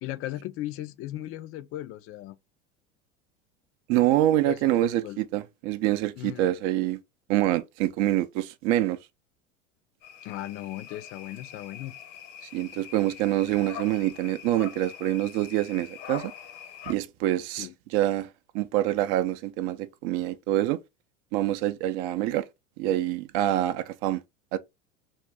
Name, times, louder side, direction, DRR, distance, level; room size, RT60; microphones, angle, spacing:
voice 1, 0.0-2.4 4.4-5.2 6.2-6.5 10.2-11.9 17.6-17.7, left 14 dB, 40° left, 0.4 m, -37 dB
voice 2, 3.9-7.0 7.3-9.0 12.5-16.3 16.9-18.3 18.5-20.8 21.3-22.4 22.8-24.2 24.5-24.6, right 14 dB, 50° right, 0.5 m, -26 dB
sound 1, 10.0-16.9, left 9 dB, 65° left, 0.8 m, -43 dB
2.7 x 2.6 x 3.3 m
hypercardioid pair, 85°, 37 cm